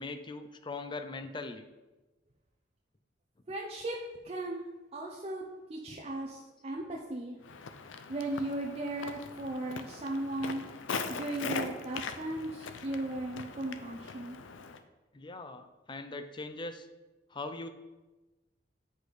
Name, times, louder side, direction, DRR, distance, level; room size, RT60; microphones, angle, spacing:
voice 1, 0.0-1.6 15.1-16.9 17.3-17.7, left 3 dB, 25° left, 8 dB, 0.5 m, -40 dB
voice 2, 3.5-4.0 4.2-4.7 4.9-7.4 8.1-10.6 11.1-14.4, right 1 dB, 35° right, -1 dB, 0.6 m, -36 dB
Walk footsteps, 7.4-14.8, left 5 dB, 90° left, 0.5 m, -41 dB
8.2 x 5.0 x 4.1 m, 1.1 s
head